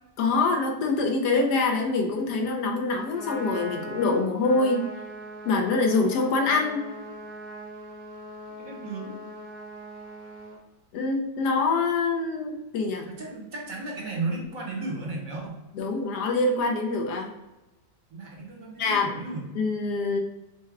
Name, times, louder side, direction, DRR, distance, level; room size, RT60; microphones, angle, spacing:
voice 1, 0.2-4.8 5.4-6.8 10.9-13.1 15.7-17.3 18.8-19.1 19.5-20.2, left 3 dB, 70° left, 2 dB, 1.2 m, -25 dB
Trumpet, 3.0-10.6, right 1 dB, 55° left, 1.6 m, -40 dB
voice 2, 8.6-9.1 13.0-15.6 18.1-19.5, right 3 dB, 55° right, -1 dB, 1.3 m, -34 dB
4.7 x 2.1 x 4.5 m, 1.0 s
omnidirectional pair, 1.9 m